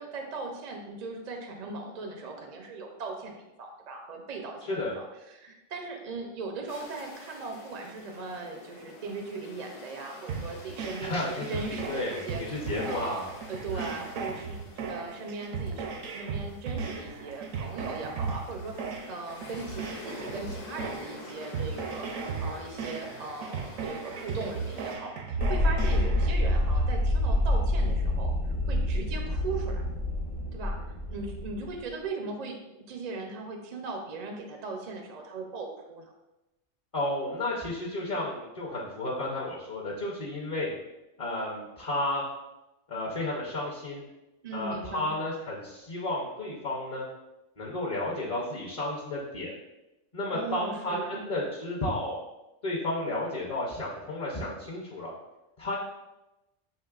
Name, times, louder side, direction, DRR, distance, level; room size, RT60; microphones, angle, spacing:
voice 1, 0.0-12.4 12.8-14.6 14.8-29.8 30.5-30.8 31.1-36.1 44.4-45.1 50.3-51.2, right 3 dB, 60° right, 3 dB, 0.4 m, -39 dB
sound 1, 6.7-25.0, left 3 dB, 90° left, 1.2 m, -48 dB
sound 2, 10.3-26.3, right 5 dB, 85° right, 1.0 m, -36 dB
voice 2, 11.0-13.3 13.7-14.0 36.9-40.7 41.2-42.2 42.9-44.0 44.5-47.0 47.6-49.5 50.1-52.2 52.6-55.1 55.6-55.8, left 1 dB, 35° left, -5 dB, 0.6 m, -32 dB
sound 3, 25.4-31.8, left 1 dB, 55° left, 1.1 m, -27 dB
6.5 x 3.1 x 2.3 m, 0.97 s
omnidirectional pair, 1.3 m